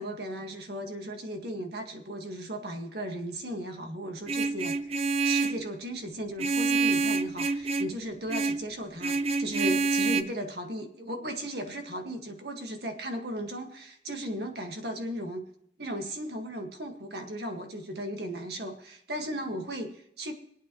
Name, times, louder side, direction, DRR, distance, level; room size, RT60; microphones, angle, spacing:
voice 1, 0.0-15.4 15.8-20.3, right 1 dB, 65° right, 4 dB, 1.8 m, -36 dB
Vehicle horn car horn honking, 4.3-5.6 6.4-8.0 8.3-8.7 9.0-10.2, right 4 dB, 35° right, 0.5 m, -27 dB
25.0 x 8.9 x 3.1 m, 0.77 s
head